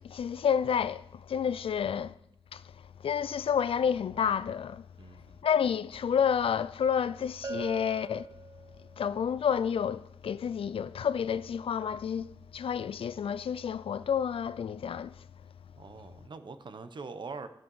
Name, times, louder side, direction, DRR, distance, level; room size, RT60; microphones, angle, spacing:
voice 1, 0.0-2.1 2.5-2.6 3.0-4.8 5.4-8.3 9.0-15.1, left 7 dB, 75° left, 0.4 m, -30 dB
voice 2, 5.0-5.5 15.8-17.5, right 4 dB, 55° right, 0.9 m, -43 dB
Bell, 7.4-9.1, right 4 dB, 40° right, 0.4 m, -41 dB
15.0 x 5.4 x 5.5 m
wide cardioid pair, 135°, 9 cm